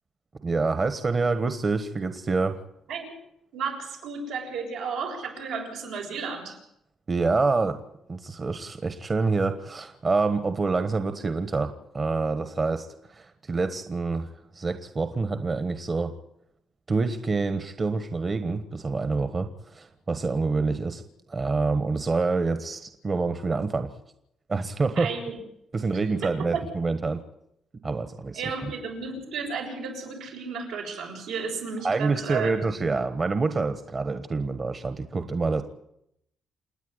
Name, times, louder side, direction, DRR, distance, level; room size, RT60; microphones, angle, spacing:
voice 1, 0.4-2.6 7.1-7.8 8.1-16.1 16.9-21.0 21.3-23.9 24.5-25.1 25.7-27.2 27.8-28.7 31.8-35.6, right 3 dB, 35° right, 9 dB, 1.4 m, -27 dB
voice 2, 3.5-6.6 25.0-25.4 26.5-26.6 28.3-32.5, right 5 dB, 90° right, -1 dB, 6.9 m, -33 dB
28.5 x 9.5 x 9.7 m, 0.79 s
cardioid pair, 90°, 0 cm